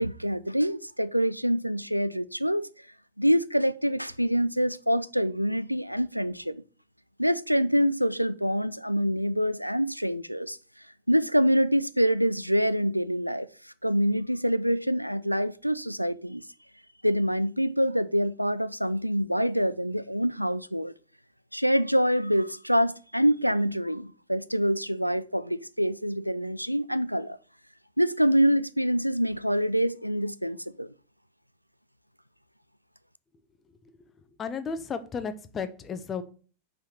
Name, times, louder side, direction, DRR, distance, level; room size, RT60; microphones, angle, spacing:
voice 1, 0.0-2.7 3.2-6.6 7.2-10.6 11.1-13.5 13.8-16.4 17.0-20.9 21.5-27.4 28.0-30.9, equal, 90° right, 0.3 m, -25 dB
voice 2, 34.4-36.2, left 5 dB, 25° left, 0.8 m, -33 dB
5.7 x 4.7 x 6.2 m
figure-of-eight pair, 90°, 0 cm